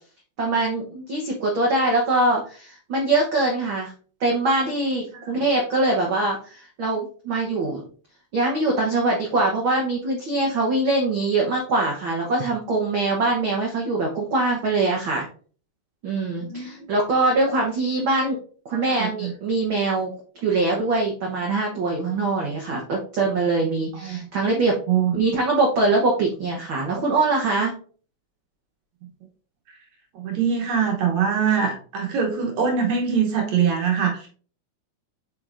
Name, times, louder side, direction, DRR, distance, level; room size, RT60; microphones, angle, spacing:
voice 1, 0.4-3.9 4.2-7.8 8.3-15.3 16.0-18.4 18.6-20.1 20.4-24.7 25.1-27.7, right 2 dB, 90° right, -1 dB, 1.1 m, -23 dB
voice 2, 16.4-16.9 18.9-19.3 24.0-24.3 24.9-25.2 30.1-34.3, right 7 dB, 65° right, 1 dB, 2.1 m, -23 dB
7.5 x 5.1 x 2.5 m, 0.42 s
omnidirectional pair, 3.9 m